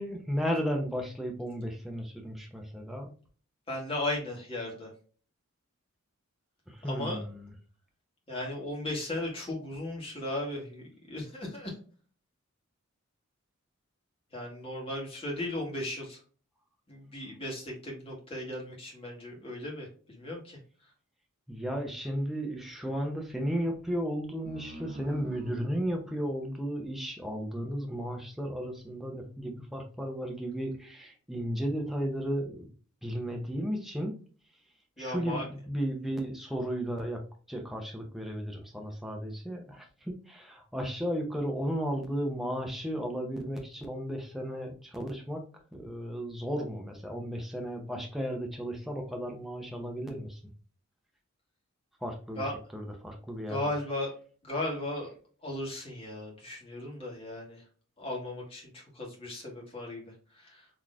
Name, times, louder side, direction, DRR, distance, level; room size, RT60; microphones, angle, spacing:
voice 1, 0.0-3.1 6.7-7.5 21.5-32.7 33.0-34.1 35.0-37.2 37.5-45.4 45.7-50.4 52.0-52.4 52.7-53.6, equal, ahead, 1 dB, 0.7 m, -34 dB
voice 2, 3.7-4.9 6.8-7.2 8.3-11.7 14.3-16.2 16.9-20.6 35.0-35.4 52.3-52.5 53.5-54.1 54.4-55.1 55.4-57.6 58.0-60.7, left 1 dB, 25° left, -2 dB, 1.5 m, -36 dB
sound 1, 24.4-27.6, right 1 dB, 45° right, 0.8 m, -46 dB
3.9 x 3.1 x 2.5 m, 0.41 s
head